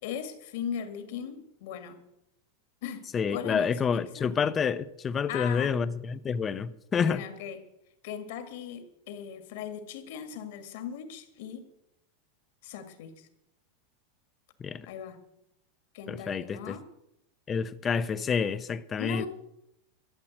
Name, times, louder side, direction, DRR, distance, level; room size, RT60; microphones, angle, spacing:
voice 1, 0.0-2.0 2.8-3.0 3.3-4.3 5.3-5.7 6.9-7.6 8.0-11.6 12.6-13.3 14.9-15.2 15.9-16.8 19.0-19.3, left 8 dB, 60° left, 1.9 m, -38 dB
voice 2, 3.1-7.2 14.6-14.9 16.1-16.8 17.5-19.3, left 6 dB, 15° left, 0.5 m, -28 dB
12.5 x 7.5 x 8.9 m
supercardioid pair, 170°, 0 cm